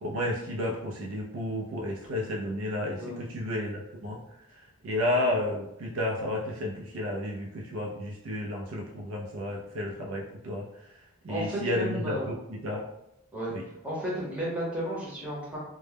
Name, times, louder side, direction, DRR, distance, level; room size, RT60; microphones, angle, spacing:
voice 1, 0.0-4.2 4.5-10.7 11.2-12.8 13.5-13.7, left 1 dB, 65° right, -2 dB, 0.4 m, -32 dB
voice 2, 11.3-12.3 13.3-13.5 13.8-15.6, equal, 5° right, -7 dB, 0.7 m, -33 dB
2.1 x 2.0 x 3.2 m, 0.85 s
head